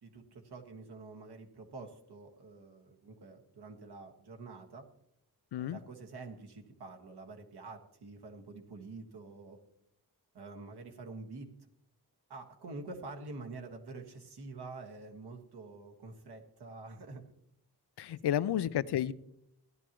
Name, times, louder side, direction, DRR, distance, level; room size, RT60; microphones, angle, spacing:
voice 1, 0.0-4.9 5.6-9.6 10.3-11.5 12.3-17.2 18.1-18.5, right 3 dB, 75° right, 2 dB, 1.7 m, -47 dB
voice 2, 18.0-19.1, left 11 dB, 85° left, 16 dB, 0.6 m, -31 dB
16.0 x 11.0 x 3.0 m, 0.75 s
wide cardioid pair, 105°, 39 cm